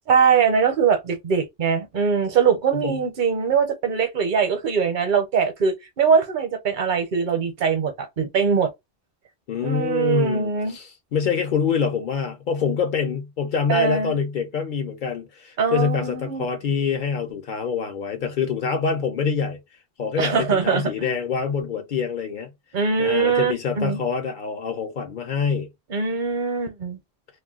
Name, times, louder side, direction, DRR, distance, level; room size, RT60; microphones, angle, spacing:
voice 1, 0.1-8.7 9.6-10.8 13.7-14.2 15.6-16.4 20.2-21.1 22.7-24.0 25.9-27.0, right 6 dB, 55° right, 0.8 m, -22 dB
voice 2, 9.5-19.6 20.0-22.5 23.0-25.7, left 6 dB, 60° left, 0.7 m, -25 dB
2.4 x 2.2 x 3.5 m
omnidirectional pair, 1.0 m